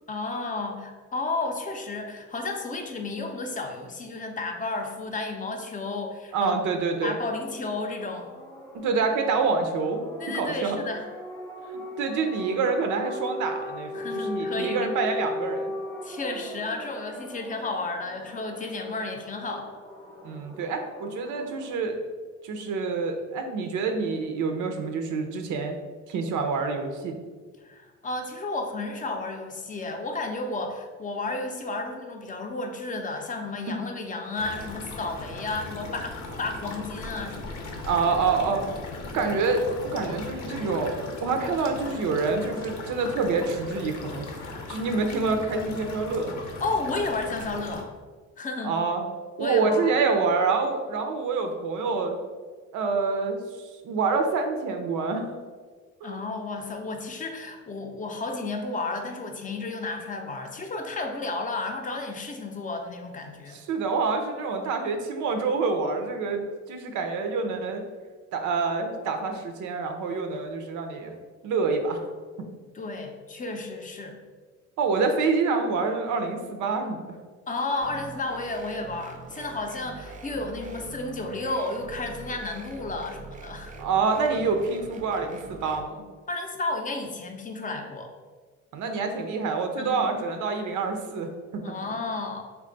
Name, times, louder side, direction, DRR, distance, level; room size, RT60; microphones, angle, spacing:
voice 1, 0.1-6.6 7.0-8.3 10.2-11.0 13.9-14.9 16.0-19.7 27.6-37.7 46.6-47.9 48.4-48.7 49.4-50.0 56.0-63.6 72.7-74.2 77.5-83.7 86.3-88.1 89.8-90.0 91.6-92.4, left 3 dB, 25° left, 4 dB, 0.5 m, -32 dB
voice 2, 6.3-7.2 8.7-10.8 12.0-15.7 20.2-22.0 22.4-25.8 26.1-27.1 37.8-38.6 39.1-44.3 44.7-46.3 48.6-49.0 49.4-52.2 52.7-55.3 56.0-56.2 63.5-67.8 68.3-71.1 71.4-72.1 74.8-77.2 83.8-86.0 88.7-91.6, right 4 dB, 80° right, 5 dB, 0.5 m, -27 dB
sound 1, 6.9-21.7, left 1 dB, 5° left, 0.9 m, -38 dB
sound 2, 34.3-47.8, left 2 dB, 75° left, 0.7 m, -38 dB
sound 3, 77.8-85.8, right 3 dB, 25° right, 0.4 m, -43 dB
3.4 x 2.3 x 3.8 m, 1.5 s
cardioid pair, 90°, 30 cm